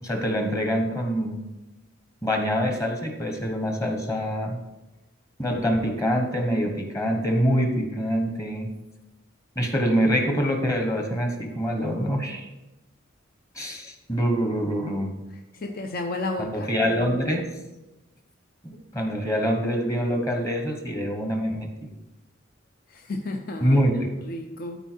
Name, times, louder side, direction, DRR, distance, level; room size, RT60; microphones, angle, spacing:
voice 1, 0.0-1.4 2.2-4.6 5.4-8.7 9.5-12.5 13.5-15.2 16.4-17.4 18.6-21.9 23.6-24.1, equal, 15° left, 3 dB, 1.1 m, -25 dB
voice 2, 15.3-16.7 22.9-23.8 24.2-24.8, left 2 dB, 50° left, 3 dB, 0.6 m, -32 dB
13.5 x 4.6 x 4.5 m, 1.0 s
head